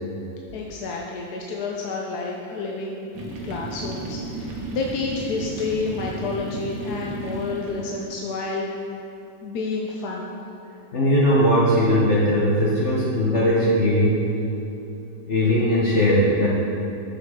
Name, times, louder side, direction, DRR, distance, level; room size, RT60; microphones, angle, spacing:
voice 1, 0.5-3.2 3.4-8.7 9.4-10.3, left 4 dB, 70° left, -1 dB, 1.2 m, -29 dB
sound 1, 3.1-8.2, right 2 dB, 85° right, 1.7 m, -34 dB
voice 2, 10.9-14.3 15.3-16.5, equal, 50° left, -6 dB, 1.2 m, -19 dB
9.2 x 7.3 x 3.6 m, 2.9 s
omnidirectional pair, 1.8 m